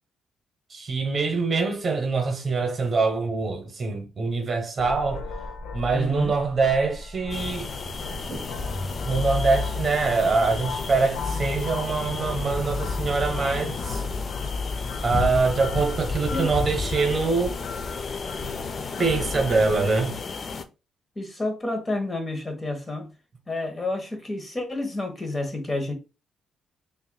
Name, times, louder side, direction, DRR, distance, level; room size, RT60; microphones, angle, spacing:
voice 1, 0.7-5.3 5.7-7.7 8.3-8.4 9.0-14.0 15.0-17.6 19.0-20.2, right 4 dB, 40° right, 1.0 m, -24 dB
sound 1, 4.8-20.0, left 3 dB, 90° left, 0.7 m, -35 dB
voice 2, 5.9-6.3 16.3-16.5 21.2-23.1 23.5-25.9, left 2 dB, 25° left, 1.2 m, -29 dB
sound 2, 7.3-20.6, left 4 dB, 40° left, 0.4 m, -33 dB
5.5 x 2.6 x 2.3 m
cardioid pair, 90°, 0 cm